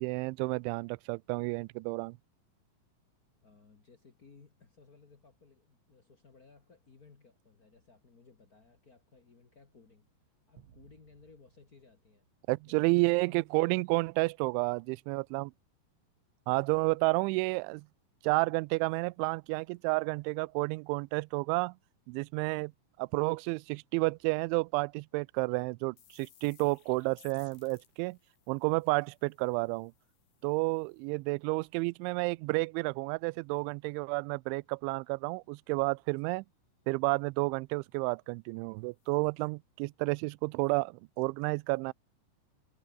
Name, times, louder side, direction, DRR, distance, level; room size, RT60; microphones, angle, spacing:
voice 1, 0.0-2.2 12.5-15.5 16.5-17.9 18.2-21.7 22.1-22.7 23.0-28.2 28.5-29.9 30.4-36.4 36.9-41.9, right 27 dB, 85° right, 2.8 m, -31 dB
voice 2, 3.4-10.1 10.5-12.3 12.7-13.8, left 4 dB, 70° left, 0.8 m, -60 dB
sound 1, 10.6-13.1, right 9 dB, 60° right, 1.8 m, -63 dB
sound 2, 25.5-25.6 26.0-31.6 38.5-38.6 39.0-39.1, left 9 dB, 85° left, 6.2 m, -63 dB
omnidirectional pair, 5.6 m